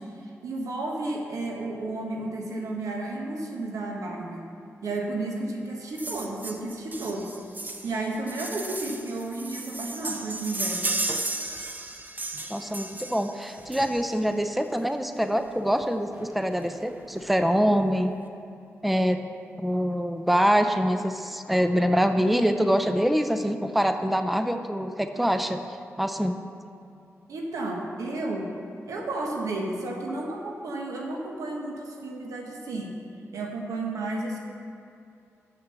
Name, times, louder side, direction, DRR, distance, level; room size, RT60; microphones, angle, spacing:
voice 1, 0.0-4.5 4.8-7.4 7.8-10.9 27.3-28.6 28.9-33.0 33.3-34.4, right 2 dB, 85° right, 0 dB, 1.3 m, -32 dB
sound 1, 6.0-14.3 15.4-15.5 15.8-15.9 16.1-16.3 16.6-17.2 17.7-17.8, right 2 dB, 30° right, 0.8 m, -34 dB
voice 2, 12.5-18.1 18.8-19.2 19.6-25.6 26.0-26.4, equal, ahead, 7 dB, 0.6 m, -24 dB
7.4 x 6.5 x 6.9 m, 2.6 s
cardioid pair, 55°, 6 cm